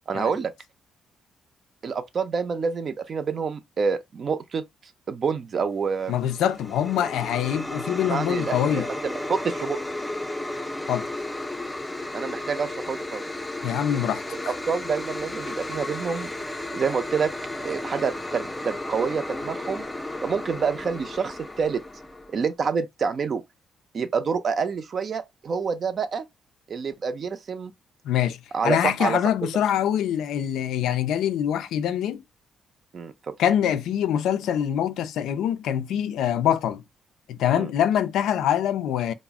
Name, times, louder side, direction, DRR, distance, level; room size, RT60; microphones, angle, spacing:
voice 1, 0.1-0.5 1.8-4.6 5.1-6.1 8.1-9.8 12.1-13.2 14.3-16.3 16.7-17.3 17.6-19.9 20.2-21.8 22.3-23.4 23.9-26.3 26.7-27.7 28.5-29.2 32.9-33.3 37.6-37.7, right 5 dB, 50° right, 0.4 m, -27 dB
sound 1, 6.0-22.4, left 1 dB, 10° left, 0.4 m, -34 dB
voice 2, 6.1-8.9 10.9-11.1 13.6-14.5 28.0-32.2 33.4-36.8 37.3-39.1, left 10 dB, 80° left, 0.3 m, -24 dB
2.4 x 2.0 x 3.4 m
cardioid pair, 90°, 0 cm